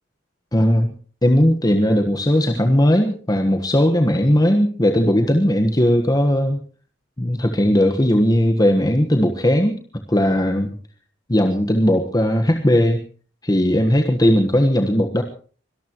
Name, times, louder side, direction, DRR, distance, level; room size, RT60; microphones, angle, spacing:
voice 1, 0.5-0.9 1.2-6.6 7.2-9.8 10.1-10.8 11.3-13.0 13.4-15.2, equal, 20° left, 5 dB, 1.3 m, -17 dB
24.5 x 18.5 x 3.0 m, 0.41 s
head